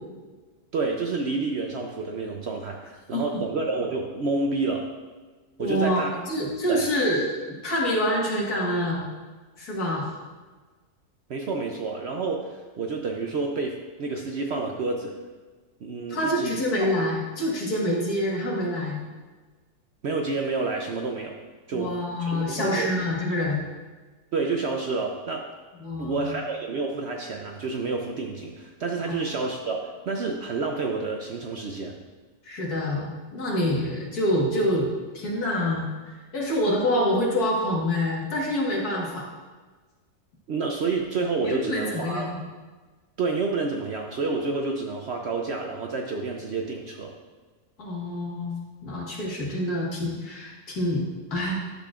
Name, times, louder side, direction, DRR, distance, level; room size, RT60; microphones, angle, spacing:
voice 1, 0.7-4.9 5.6-6.2 6.7-6.8 11.3-15.1 15.8-16.5 20.0-21.4 21.7-21.9 22.2-22.9 24.3-25.5 26.0-31.9 40.5-42.3 43.2-47.1, right 3 dB, 60° right, 1 dB, 0.7 m, -29 dB
voice 2, 5.6-9.1 9.6-10.1 16.1-19.0 21.7-23.6 25.8-26.3 29.1-29.2 32.4-34.9 35.1-35.9 36.3-39.2 41.4-42.3 47.8-51.0 51.3-51.5, left 1 dB, 80° left, -3 dB, 2.1 m, -26 dB
10.0 x 6.8 x 2.4 m, 1.3 s
omnidirectional pair, 1.6 m